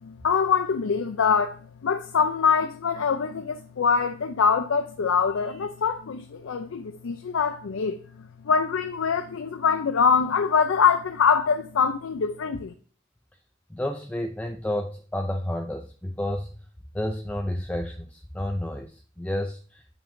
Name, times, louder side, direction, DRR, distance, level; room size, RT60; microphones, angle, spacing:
voice 1, 0.0-12.7, left 6 dB, 85° left, 0.5 m, -24 dB
voice 2, 13.7-16.5 16.9-19.9, left 1 dB, 5° left, 0.4 m, -31 dB
7.0 x 5.9 x 2.6 m
head